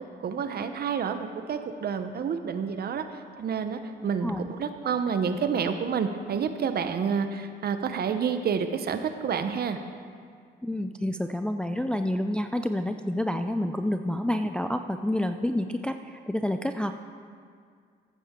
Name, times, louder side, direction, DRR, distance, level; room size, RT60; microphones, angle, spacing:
voice 1, 0.0-3.0 3.4-9.8, right 6 dB, 50° right, 9 dB, 0.8 m, -29 dB
voice 2, 10.6-16.9, left 1 dB, 5° left, 7 dB, 0.4 m, -28 dB
14.5 x 8.5 x 3.7 m, 2.1 s
cardioid pair, 90°, 20 cm